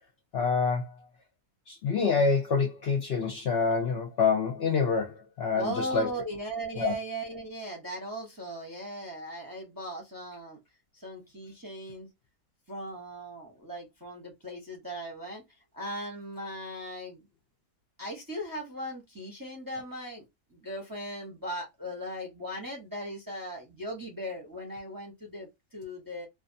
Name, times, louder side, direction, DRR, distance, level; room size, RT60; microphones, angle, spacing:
voice 1, 0.3-1.0 1.7-6.1 6.8-6.9, left 5 dB, 55° left, 0.7 m, -27 dB
voice 2, 5.5-10.6 10.9-12.1 12.7-15.4 15.7-17.3 18.0-26.3, equal, 20° right, 0.7 m, -38 dB
2.5 x 2.4 x 2.5 m
omnidirectional pair, 1.5 m